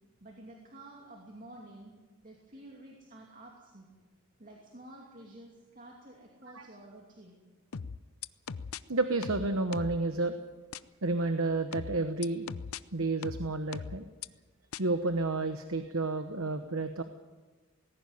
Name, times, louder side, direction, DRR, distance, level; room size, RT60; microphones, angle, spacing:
voice 1, 0.2-1.9 2.2-3.9 4.4-7.4, right 1 dB, 35° right, -1 dB, 2.6 m, -51 dB
sound 1, 7.7-8.8 9.2-10.0 10.7-10.8 11.7-12.8 13.2-14.3 14.7-14.8, left 6 dB, 75° left, 0.6 m, -39 dB
voice 2, 8.9-10.4 11.0-12.5 12.9-14.0 14.8-17.0, right 3 dB, 70° right, 8 dB, 1.1 m, -30 dB
19.0 x 16.5 x 9.4 m, 1.3 s
head